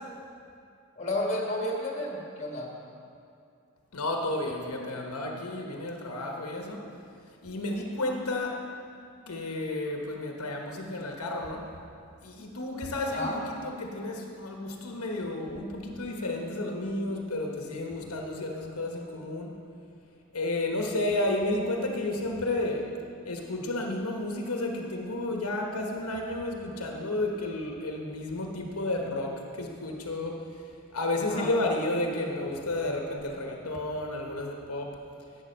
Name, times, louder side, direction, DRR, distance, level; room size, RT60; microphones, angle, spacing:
voice 1, 0.9-2.7 13.0-13.4 31.3-31.5, left 1 dB, 30° left, -1 dB, 1.6 m, -31 dB
voice 2, 3.9-6.9 7.4-8.6 9.3-11.6 12.2-19.5 20.3-22.9 23.2-30.4 30.9-34.9, left 2 dB, 85° left, 1 dB, 1.1 m, -32 dB
11.0 x 8.3 x 5.4 m, 2.4 s
head